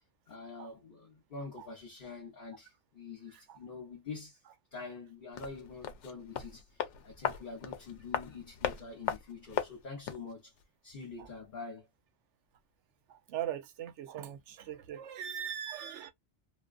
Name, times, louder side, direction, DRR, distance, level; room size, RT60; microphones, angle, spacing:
voice 1, 0.3-4.4 4.7-10.5 10.8-11.8, left 4 dB, 50° left, 1.1 m, -45 dB
sound 1, 5.3-10.3 10.6-10.7, left 9 dB, 85° left, 0.9 m, -38 dB
voice 2, 13.1-16.1, right 10 dB, 85° right, 0.9 m, -40 dB
2.5 x 2.4 x 2.3 m
omnidirectional pair, 1.2 m